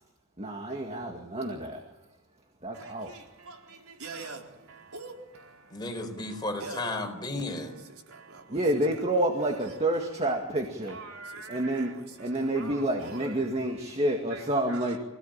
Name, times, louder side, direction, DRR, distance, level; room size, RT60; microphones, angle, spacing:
voice 1, 0.4-1.8 2.6-3.1 8.5-11.0 11.5-15.0, right 1 dB, 30° right, 2.1 m, -29 dB
voice 2, 2.7-5.8 6.2-6.8 7.9-8.6 9.2-9.3 9.6-9.8 10.8-13.3 14.3-15.0, right 3 dB, 90° right, 4.2 m, -44 dB
voice 3, 5.7-7.7, left 2 dB, 20° left, 4.3 m, -33 dB
25.5 x 17.5 x 8.9 m
head